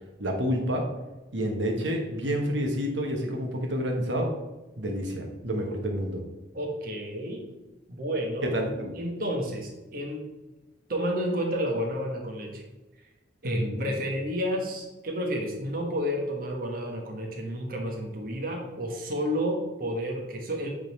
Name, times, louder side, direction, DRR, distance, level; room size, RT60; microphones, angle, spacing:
voice 1, 0.2-0.8 1.3-4.3 4.8-6.2 8.5-8.9 13.4-13.9, equal, 75° right, 1 dB, 1.4 m, -29 dB
voice 2, 6.5-7.4 7.9-8.5 9.0-10.3 10.9-12.6 13.4-20.7, equal, 50° right, 0 dB, 1.3 m, -31 dB
8.9 x 4.0 x 5.3 m, 1.1 s
head